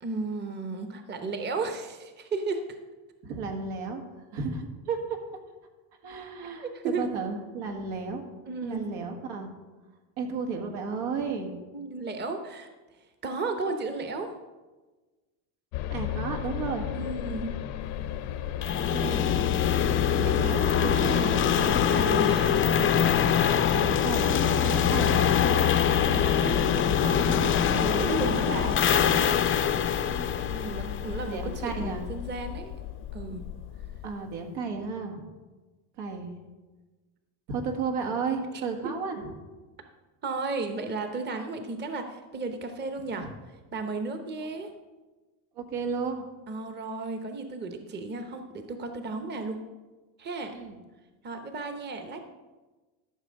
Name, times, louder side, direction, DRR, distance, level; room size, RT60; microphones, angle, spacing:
voice 1, 0.0-2.8 6.5-7.1 8.4-8.8 11.7-12.7 13.2-14.3 16.9-17.5 20.8-22.7 26.0-28.8 30.5-32.7 33.1-33.4 38.5-38.9 40.2-43.3 43.7-44.7 46.5-49.6 50.2-50.6 51.2-52.2, right 3 dB, 20° right, 7 dB, 0.8 m, -34 dB
voice 2, 3.2-4.0 4.3-5.0 6.0-6.7 7.0-8.2 8.6-9.5 10.2-11.5 15.9-16.9 18.9-19.7 20.2-20.6 23.7-25.6 30.0-32.0 34.0-35.3 36.0-36.3 37.5-39.3 43.2-43.3 45.6-46.2 50.6-50.8, right 5 dB, 80° right, 3 dB, 1.9 m, -33 dB
sound 1, 15.7-34.1, left 10 dB, 75° left, 0.9 m, -32 dB
sound 2, 18.6-31.5, left 8 dB, 25° left, 0.5 m, -24 dB
13.0 x 6.0 x 5.2 m, 1.2 s
cardioid pair, 125°, 49 cm